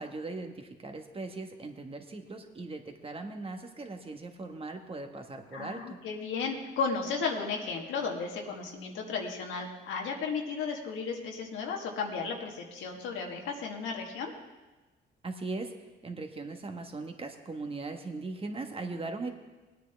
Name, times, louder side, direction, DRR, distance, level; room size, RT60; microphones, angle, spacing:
voice 1, 0.0-6.0 15.2-15.7 16.0-19.3, right 3 dB, 30° right, 5 dB, 1.4 m, -39 dB
voice 2, 5.5-14.3, left 5 dB, 90° left, 0 dB, 1.6 m, -34 dB
19.0 x 9.4 x 3.5 m, 1.2 s
cardioid pair, 90°, 20 cm